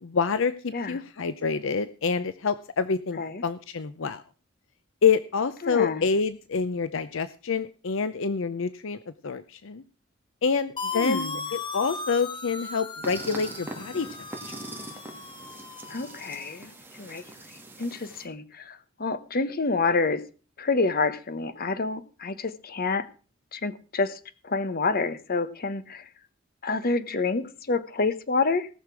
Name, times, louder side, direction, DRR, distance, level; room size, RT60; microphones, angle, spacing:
voice 1, 0.0-4.2 5.0-9.8 10.4-14.3, left 5 dB, 65° left, 0.7 m, -27 dB
voice 2, 5.6-6.0 10.9-11.4 15.9-17.2 17.8-20.2 20.6-23.1 23.5-26.1 26.6-28.7, left 3 dB, 45° left, 1.0 m, -28 dB
sound 1, 10.8-16.5, left 4 dB, 25° left, 1.1 m, -37 dB
sound 2, 13.0-18.2, right 2 dB, 10° right, 2.4 m, -42 dB
18.0 x 6.6 x 6.1 m
head